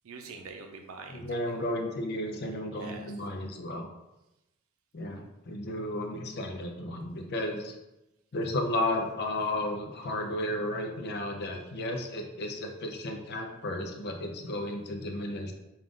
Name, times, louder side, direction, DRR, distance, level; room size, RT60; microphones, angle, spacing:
voice 1, 0.0-1.6 2.3-3.1 14.5-14.8, right 4 dB, 75° right, 3 dB, 0.5 m, -46 dB
voice 2, 1.1-3.9 4.9-7.7 8.3-15.5, left 1 dB, 50° left, 4 dB, 0.5 m, -33 dB
3.6 x 2.4 x 3.7 m, 0.94 s
head